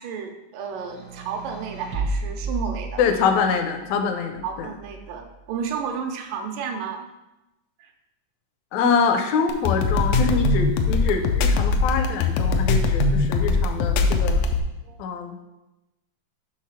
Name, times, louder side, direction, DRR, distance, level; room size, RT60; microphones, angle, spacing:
voice 1, 0.0-3.0 4.4-7.1 7.8-7.9 14.8-15.0, right 6 dB, 85° right, 4 dB, 2.4 m, -32 dB
sound 1, 0.7-3.5 4.4-5.3, right 2 dB, 65° right, 1.1 m, -32 dB
voice 2, 3.0-4.7 8.7-14.4 15.0-15.4, left 5 dB, 75° left, 6 dB, 1.8 m, -24 dB
sound 2, 9.5-14.6, left 3 dB, 90° left, 2.3 m, -21 dB
6.6 x 4.0 x 5.6 m, 0.98 s
omnidirectional pair, 3.7 m